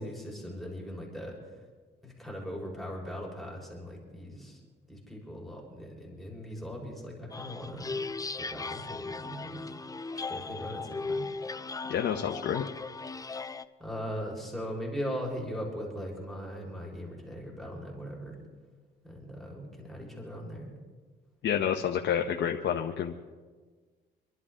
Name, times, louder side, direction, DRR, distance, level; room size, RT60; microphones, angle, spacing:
voice 1, 0.0-1.3 2.0-4.6 4.9-7.9 8.4-9.6 10.1-11.2 13.8-18.4 19.0-20.7, equal, ahead, -2 dB, 4.1 m, -39 dB
sound 1, 7.3-13.6, left 3 dB, 20° left, 0.6 m, -37 dB
voice 2, 11.9-12.7 21.4-23.1, left 8 dB, 65° left, 3 dB, 1.0 m, -29 dB
27.0 x 11.5 x 3.8 m, 1.4 s
cardioid pair, 90°, 20 cm